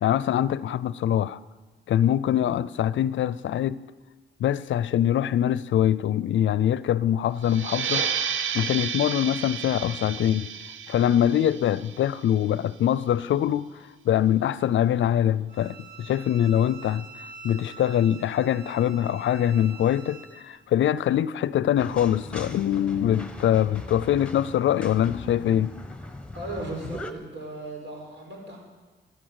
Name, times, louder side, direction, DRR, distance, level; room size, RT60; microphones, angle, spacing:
voice 1, 0.0-1.4 1.9-3.8 4.4-8.1 8.5-10.5 10.9-13.7 14.0-17.1 17.4-25.7, left 10 dB, 75° left, 0.5 m, -23 dB
sound 1, 7.4-12.7, right 7 dB, 90° right, 0.7 m, -32 dB
Bowed string instrument, 15.5-20.4, right 6 dB, 20° right, 2.6 m, -46 dB
sound 2, 21.8-27.1, left 1 dB, 5° left, 1.2 m, -39 dB
voice 2, 26.3-28.6, right 1 dB, 70° right, 5.2 m, -36 dB
12.5 x 11.0 x 7.8 m
cardioid pair, 75°, 20 cm